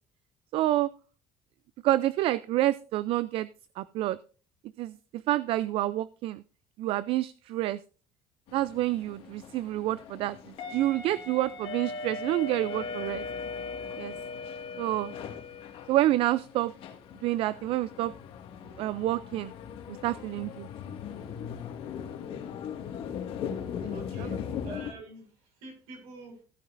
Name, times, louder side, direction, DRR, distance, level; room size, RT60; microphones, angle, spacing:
voice 1, 0.5-0.9 1.8-3.5 3.8-4.2 4.8-6.4 6.8-7.8 8.5-13.2 14.0-14.1 14.8-15.1 15.9-16.7 17.2-18.1 18.8-19.5 20.0-20.7, right 15 dB, 60° right, 0.4 m, -28 dB
sound 1, 8.5-24.9, left 6 dB, 60° left, 1.9 m, -39 dB
voice 2, 23.6-26.4, right 2 dB, 85° right, 6.1 m, -46 dB
15.5 x 9.4 x 2.6 m
cardioid pair, 130°, 11 cm